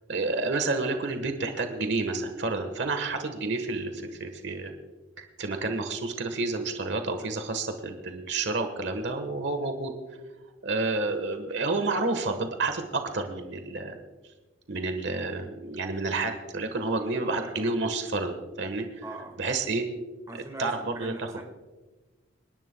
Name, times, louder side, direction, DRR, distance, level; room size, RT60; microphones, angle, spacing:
voice 1, 0.1-3.9 4.2-4.7 5.2-9.9 10.6-14.0 14.7-19.1 19.4-19.8 20.6-21.4, right 3 dB, 65° right, 6 dB, 1.3 m, -30 dB
voice 2, 16.9-17.7 19.0-19.3 20.3-21.4, right 2 dB, 20° right, 2 dB, 1.7 m, -42 dB
27.5 x 11.0 x 2.2 m, 1.2 s
head